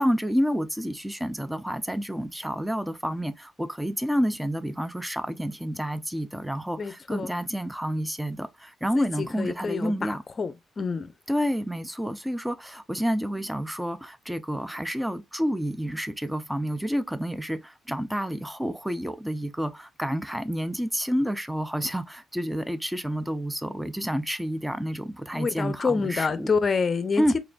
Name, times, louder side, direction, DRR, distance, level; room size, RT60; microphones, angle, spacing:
voice 1, 0.0-10.2 11.3-26.5 27.2-27.4, equal, 5° right, 0.5 m, -29 dB
voice 2, 6.8-7.3 8.9-10.1 10.4-11.1 25.3-27.4, left 5 dB, 40° left, 0.6 m, -27 dB
4.1 x 3.3 x 2.4 m
cardioid pair, 85°, 0 cm